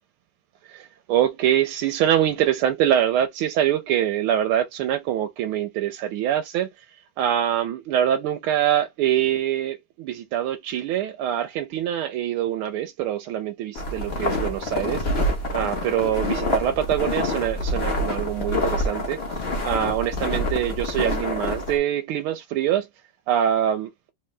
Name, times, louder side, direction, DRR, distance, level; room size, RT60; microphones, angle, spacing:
voice 1, 0.7-6.7 7.2-15.2 15.5-19.2 19.6-22.9 23.3-23.9, right 11 dB, 85° right, 1.5 m, -24 dB
sound 1, 13.7-21.8, left 1 dB, 35° left, 1.3 m, -26 dB
3.8 x 2.8 x 3.2 m
omnidirectional pair, 2.3 m